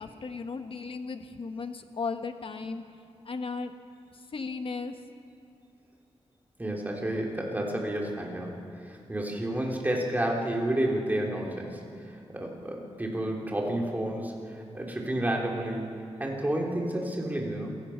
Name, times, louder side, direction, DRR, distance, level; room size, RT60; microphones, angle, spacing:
voice 1, 0.0-2.8 3.2-3.7 4.3-4.9, left 4 dB, 55° left, 7 dB, 1.4 m, -35 dB
voice 2, 6.6-15.9 16.2-17.8, right 1 dB, 15° right, -1 dB, 3.4 m, -31 dB
27.5 x 16.5 x 5.9 m, 2.7 s
wide cardioid pair, 100°, 11 cm